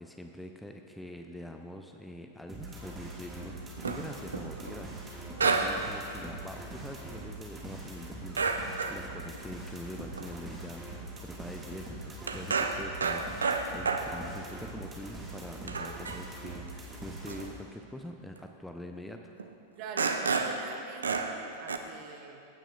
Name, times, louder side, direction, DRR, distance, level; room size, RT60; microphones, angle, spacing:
voice 1, 0.0-19.3, left 1 dB, 5° left, 4 dB, 0.4 m, -44 dB
sound 1, 2.5-17.5, right 2 dB, 15° right, 1.6 m, -43 dB
sound 2, 3.6-4.8 5.4-5.9 6.2-6.3 8.4-9.0 9.3-9.4 10.0-10.3 10.9-11.0 11.2-11.4 11.7-14.2 14.8-14.9 15.3-15.4 15.7-16.5 17.3-17.5 18.4-18.5 19.4-19.5 20.0-20.7 21.0-21.4 21.7-21.8, right 4 dB, 70° right, 0.5 m, -31 dB
voice 2, 19.8-22.5, right 6 dB, 45° right, 4 dB, 0.8 m, -45 dB
15.0 x 8.9 x 2.3 m, 2.7 s
figure-of-eight pair, 90°, 0 cm